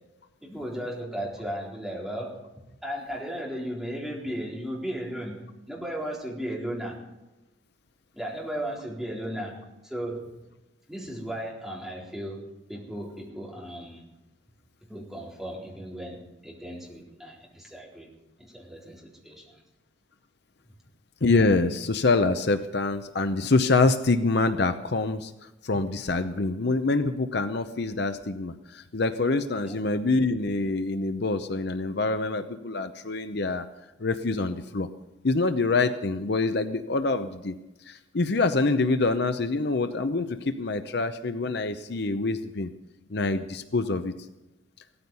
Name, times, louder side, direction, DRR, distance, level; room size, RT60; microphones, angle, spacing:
voice 1, 0.4-2.4 2.8-5.4 5.7-7.0 8.1-10.3 10.9-14.0 14.9-18.1 18.4-19.6 29.6-29.7, equal, ahead, -4 dB, 4.1 m, -35 dB
voice 2, 21.2-25.3 25.6-33.7 34.0-34.9 35.2-37.5 37.9-42.7 43.1-44.1, left 3 dB, 55° left, 9 dB, 0.7 m, -25 dB
17.0 x 14.0 x 5.5 m, 0.99 s
head